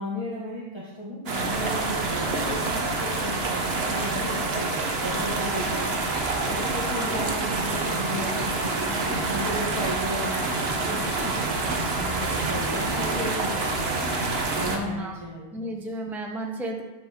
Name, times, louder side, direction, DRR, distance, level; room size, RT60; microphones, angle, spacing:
voice 1, 0.0-6.0 6.4-13.9 14.5-15.5, equal, 25° right, -7 dB, 1.4 m, -34 dB
sound 1, 1.3-14.8, right 3 dB, 65° right, 1.3 m, -27 dB
voice 2, 14.6-15.2 15.5-16.8, right 1 dB, ahead, 2 dB, 0.7 m, -33 dB
12.5 x 6.0 x 3.0 m, 1.1 s
omnidirectional pair, 1.1 m